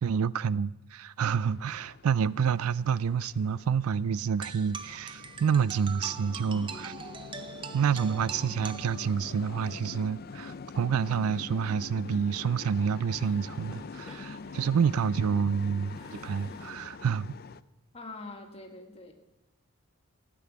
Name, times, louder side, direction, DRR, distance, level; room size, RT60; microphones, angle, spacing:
voice 1, 0.0-6.9 7.7-17.3, right 6 dB, 80° right, 0.4 m, -28 dB
sound 1, 1.3-17.6, left 4 dB, 45° left, 0.4 m, -44 dB
sound 2, 4.4-9.4, right 6 dB, 20° right, 0.6 m, -42 dB
sound 3, 8.1-10.6 11.3-12.6 12.9-16.7, equal, 5° right, 3.6 m, -57 dB
voice 2, 17.9-19.1, left 2 dB, 25° left, 1.6 m, -44 dB
14.0 x 7.7 x 9.4 m
head